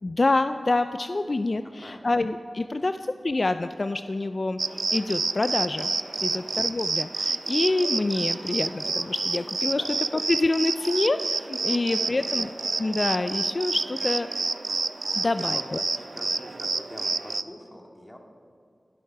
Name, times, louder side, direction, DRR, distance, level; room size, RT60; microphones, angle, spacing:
voice 1, 0.0-5.9 6.2-9.8 10.1-12.5 12.8-14.3 15.1-15.8, left 2 dB, 50° left, 10 dB, 0.4 m, -27 dB
voice 2, 1.8-2.2 2.8-2.9 6.2-6.5 9.8-10.0 11.6-12.4 15.2-18.2, equal, 20° left, 1 dB, 2.2 m, -45 dB
sound 1, 4.6-17.4, right 3 dB, 70° right, 0.5 m, -29 dB
21.5 x 12.0 x 4.6 m, 2.4 s
wide cardioid pair, 60°, 0 cm